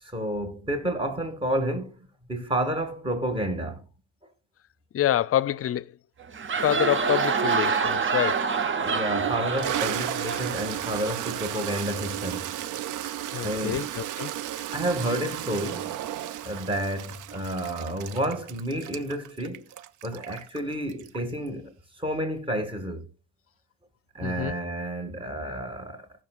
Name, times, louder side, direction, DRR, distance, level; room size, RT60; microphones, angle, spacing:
voice 1, 0.0-1.9 2.3-3.8 8.8-12.5 12.8-12.9 13.4-13.8 14.7-15.9 16.4-19.7 20.0-23.1 24.1-26.1, right 1 dB, 15° right, 2.1 m, -30 dB
voice 2, 4.9-5.9 6.6-8.5 13.3-14.3 24.2-24.5, left 12 dB, 50° left, 0.5 m, -26 dB
sound 1, 6.2-11.8, right 5 dB, 40° right, 0.9 m, -27 dB
Toilet flush, 8.3-8.4 9.0-21.5, right 12 dB, 80° right, 0.6 m, -34 dB
16.5 x 6.3 x 2.5 m
cardioid pair, 90°, 30 cm